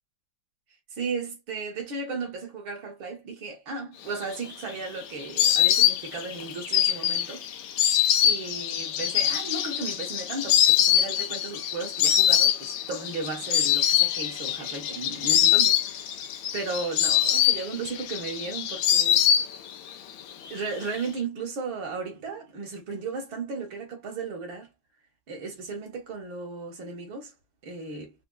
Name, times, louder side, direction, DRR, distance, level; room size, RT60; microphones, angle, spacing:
voice 1, 0.9-7.5 8.2-16.0 16.5-19.3 20.5-24.7 25.3-27.3 27.6-28.1, right 4 dB, 65° right, 2.1 m, -35 dB
Insect, 4.2-19.9 20.2-21.0, left 10 dB, 90° left, 1.6 m, -24 dB
5.1 x 2.3 x 2.2 m
omnidirectional pair, 2.4 m